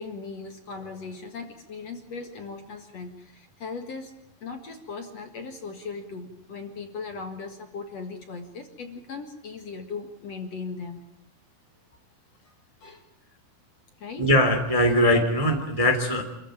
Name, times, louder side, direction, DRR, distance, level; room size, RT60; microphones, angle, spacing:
voice 1, 0.0-4.1 4.4-11.0 12.4-12.5 12.8-13.0 14.0-14.3, left 4 dB, 50° left, 5 dB, 2.5 m, -38 dB
voice 2, 14.2-16.2, left 1 dB, 10° right, 5 dB, 1.9 m, -21 dB
26.5 x 15.0 x 8.9 m, 0.86 s
omnidirectional pair, 4.3 m